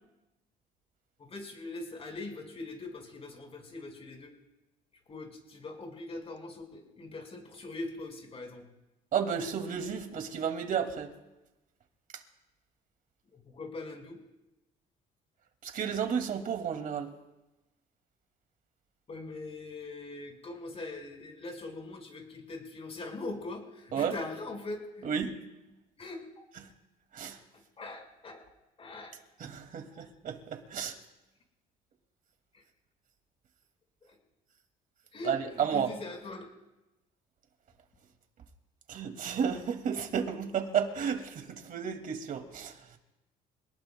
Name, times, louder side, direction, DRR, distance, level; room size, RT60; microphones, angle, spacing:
voice 1, 1.2-4.3 5.1-8.7 13.3-14.2 19.1-25.1 26.0-26.2 27.5-28.4 28.8-29.2 29.9-30.1 32.5-32.6 34.0-34.2 35.1-36.5, left 2 dB, 35° left, 1 dB, 5.1 m, -42 dB
voice 2, 9.1-11.1 15.6-17.1 23.9-24.1 25.0-25.3 27.1-27.4 29.4-30.9 35.2-35.9 38.9-42.7, right 7 dB, 55° right, 5 dB, 2.3 m, -32 dB
27.0 x 19.5 x 2.3 m, 1.0 s
cardioid pair, 110°, 17 cm